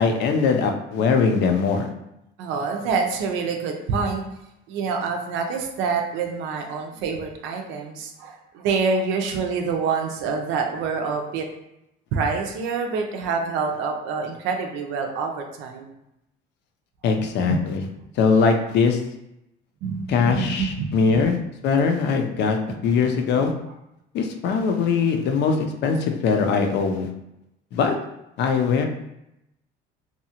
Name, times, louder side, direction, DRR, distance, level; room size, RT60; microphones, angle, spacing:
voice 1, 0.0-1.9 17.0-17.8 18.2-19.0 20.1-21.4 21.6-22.6 22.8-23.5 24.1-25.6 25.8-27.1 27.7-27.9 28.4-28.9, left 5 dB, 65° left, 5 dB, 0.5 m, -21 dB
voice 2, 2.4-4.2 4.7-11.5 12.1-15.9 17.2-17.7 19.8-21.3, right 5 dB, 80° right, 3 dB, 0.5 m, -26 dB
2.8 x 2.3 x 2.8 m, 0.85 s
cardioid pair, 105°, 19 cm